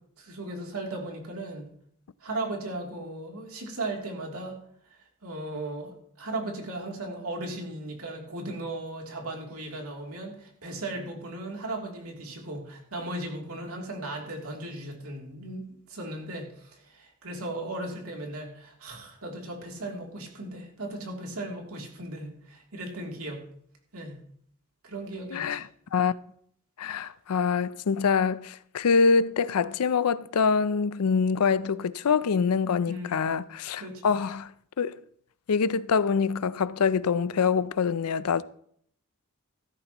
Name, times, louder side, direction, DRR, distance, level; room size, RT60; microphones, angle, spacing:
voice 1, 0.2-1.7 2.2-4.6 4.9-23.5 23.9-24.2 24.8-25.6 32.9-33.4 33.8-34.1, right 2 dB, 75° right, 2.9 m, -37 dB
voice 2, 25.3-25.6 25.9-26.1 26.8-34.5 34.8-35.0 35.5-38.4, left 5 dB, 85° left, 0.5 m, -25 dB
14.5 x 13.0 x 3.0 m
head